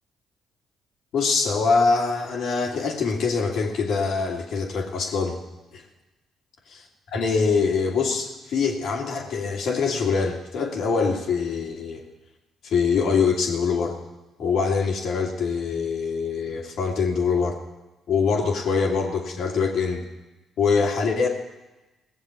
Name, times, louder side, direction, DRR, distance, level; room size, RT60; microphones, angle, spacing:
voice 1, 1.1-5.4 5.7-5.8 7.1-12.0 12.6-14.0 14.4-17.6 18.1-20.0 20.6-21.3, left 5 dB, 75° left, 1 dB, 2.7 m, -24 dB
18.0 x 7.3 x 8.3 m, 1.1 s
supercardioid pair, 65°, 0 cm